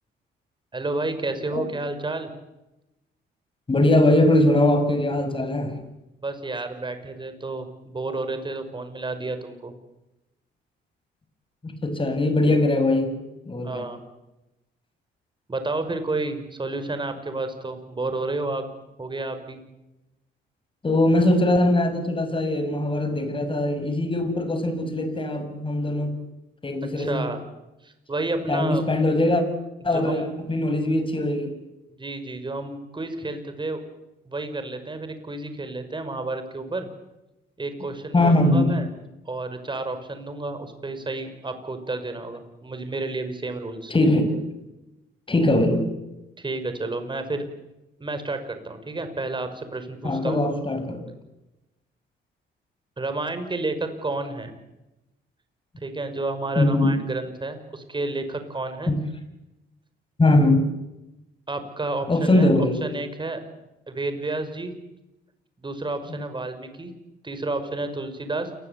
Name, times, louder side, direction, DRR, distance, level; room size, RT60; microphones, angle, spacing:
voice 1, 0.7-2.3 6.2-9.7 13.6-14.0 15.5-18.7 19.0-19.6 27.0-27.4 27.8-28.9 29.9-30.3 32.0-33.8 34.2-36.9 37.6-38.9 39.3-43.9 46.4-47.5 48.0-50.4 53.0-54.5 55.8-58.9 61.5-62.5 62.8-63.4 63.9-64.7 65.6-66.9 67.2-68.5, right 2 dB, 25° right, 9 dB, 5.7 m, -31 dB
voice 2, 3.7-5.8 11.6-13.1 13.5-13.9 20.8-26.2 26.6-27.3 28.5-29.4 29.8-31.5 38.1-38.6 43.9-44.4 45.3-45.9 50.0-51.1 56.5-56.9 58.9-59.0 60.2-60.6 62.1-62.8 66.1-66.2, left 1 dB, 25° left, 9 dB, 6.6 m, -21 dB
29.0 x 21.5 x 8.6 m, 0.97 s
cardioid pair, 90°, 20 cm